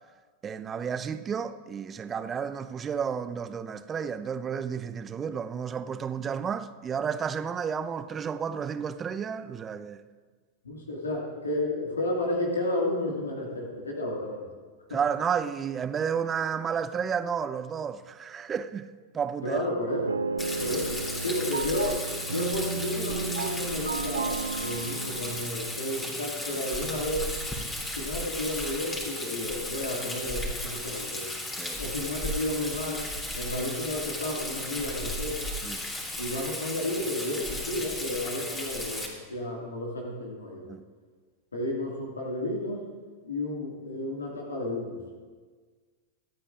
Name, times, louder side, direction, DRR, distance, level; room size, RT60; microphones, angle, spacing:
voice 1, 0.4-10.0 14.9-18.9 19.1-19.6 31.5-31.8 35.6-35.8 40.6-40.8, right 7 dB, 25° right, 0.6 m, -31 dB
voice 2, 10.7-14.5 14.9-15.0 19.4-20.0 20.6-27.4 28.0-31.3 31.8-33.1 33.4-35.5 36.2-40.7 41.5-42.9 43.2-45.0, left 1 dB, 85° left, 1.9 m, -32 dB
sound 1, 19.9-25.5, right 4 dB, 85° right, 0.3 m, -33 dB
Rain, 20.4-39.1, left 1 dB, 15° left, 3.0 m, -35 dB
25.5 x 8.7 x 2.5 m
figure-of-eight pair, 95°, 0 cm